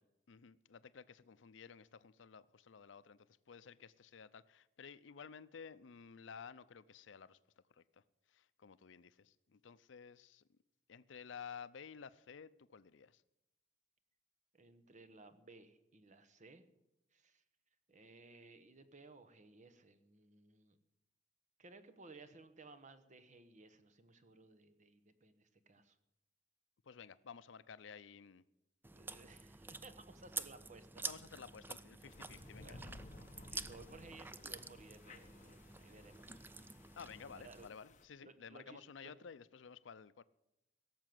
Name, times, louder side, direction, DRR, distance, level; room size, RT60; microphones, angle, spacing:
voice 1, 0.3-7.4 7.7-8.0 8.3-10.4 10.9-13.2 26.8-28.4 31.0-32.8 37.0-40.2, left 6 dB, 75° left, 0.5 m, -54 dB
voice 2, 14.5-16.6 17.1-17.4 17.9-20.8 21.6-26.0 28.9-31.0 32.3-33.0 33.4-36.4 37.4-37.7 38.2-39.1, right 3 dB, 40° right, 1.0 m, -59 dB
Chewing mastication, 28.8-37.7, right 3 dB, 10° right, 0.4 m, -49 dB
sound 1, 32.1-38.1, left 1 dB, 40° left, 1.0 m, -57 dB
17.0 x 7.4 x 7.7 m
head